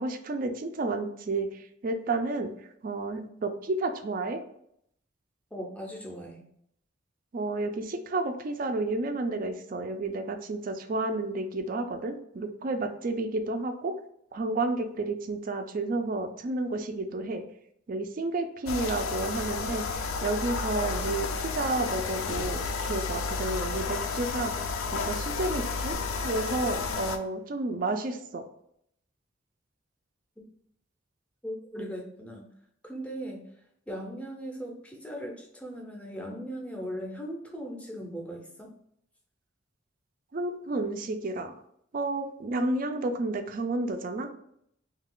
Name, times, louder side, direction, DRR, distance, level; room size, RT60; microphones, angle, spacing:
voice 1, 0.0-2.5 2.8-4.4 7.3-13.9 14.3-17.4 17.9-19.8 20.2-24.5 24.9-26.0 26.2-28.4 31.8-31.9 40.3-41.5 41.9-44.3, right 2 dB, 45° right, 7 dB, 0.3 m, -31 dB
voice 2, 5.5-6.5 30.4-30.5 31.4-32.5 32.8-33.5 33.9-38.7, equal, 5° left, 0 dB, 0.5 m, -38 dB
sound 1, 18.7-27.2, left 4 dB, 90° left, 0.4 m, -31 dB
2.8 x 2.3 x 3.6 m, 0.71 s
head